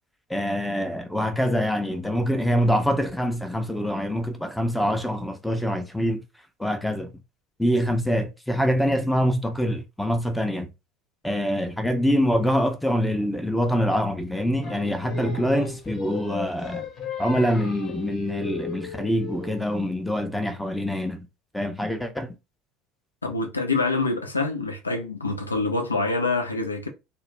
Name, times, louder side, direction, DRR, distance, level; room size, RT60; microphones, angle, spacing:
voice 1, 0.3-6.2 6.6-7.1 7.6-10.7 11.2-16.8 17.2-21.3 21.5-22.4, equal, 5° left, 0.5 m, -25 dB
Singing, 14.6-19.8, left 5 dB, 35° left, 0.8 m, -36 dB
voice 2, 23.2-26.9, left 3 dB, 85° left, 0.4 m, -26 dB
2.3 x 2.0 x 3.0 m
figure-of-eight pair, 65°, 0 cm